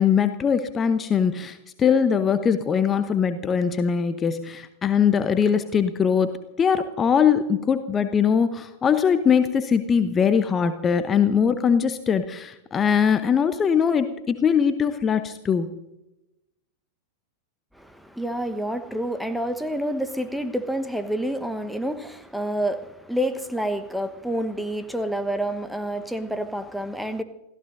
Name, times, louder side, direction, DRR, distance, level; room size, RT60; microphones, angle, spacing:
voice 1, 0.0-15.7, left 7 dB, 20° left, 0.8 m, -21 dB
voice 2, 17.7-27.2, right 1 dB, ahead, 1.1 m, -28 dB
28.5 x 15.0 x 2.6 m
figure-of-eight pair, 90°, 0 cm